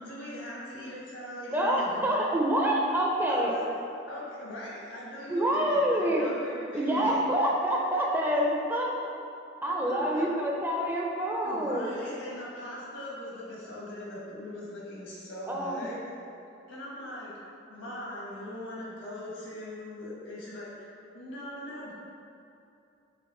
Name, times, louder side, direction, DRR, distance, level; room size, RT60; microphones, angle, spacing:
voice 1, 0.0-2.3 3.3-3.7 4.0-7.2 9.9-10.2 11.4-16.0 16.7-17.4 17.7-21.9, left 1 dB, 85° left, -6 dB, 1.3 m, -41 dB
voice 2, 1.5-3.5 5.3-6.3 6.7-9.0 9.6-12.0 15.5-15.8, right 1 dB, 10° right, -2 dB, 0.4 m, -27 dB
5.2 x 2.6 x 3.7 m, 2.7 s
head